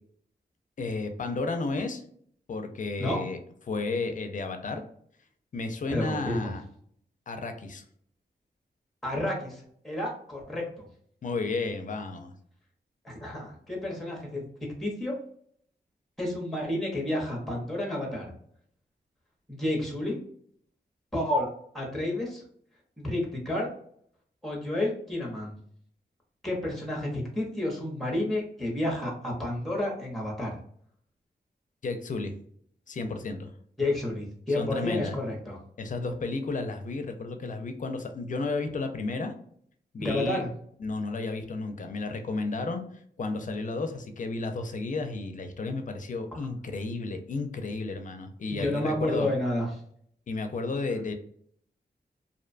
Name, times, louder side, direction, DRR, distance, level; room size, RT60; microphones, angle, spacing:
voice 1, 0.8-2.0 2.5-3.4 3.7-4.8 5.5-6.6 7.3-7.8 11.2-12.3 31.8-32.3 32.9-33.5 34.5-35.1 35.8-39.3 39.9-40.4 40.8-42.8 43.2-49.3 50.3-51.1, left 3 dB, 50° left, 7 dB, 0.4 m, -32 dB
voice 2, 5.9-6.5 9.0-10.9 13.0-14.4 14.8-15.1 16.2-18.3 19.5-20.2 21.1-21.5 21.7-22.4 23.0-23.7 24.4-25.5 26.4-30.5 33.8-35.6 40.0-40.5 46.3-46.5 48.5-49.8, left 1 dB, ahead, -1 dB, 0.7 m, -30 dB
2.5 x 2.1 x 2.5 m, 0.64 s
wide cardioid pair, 110°, 18 cm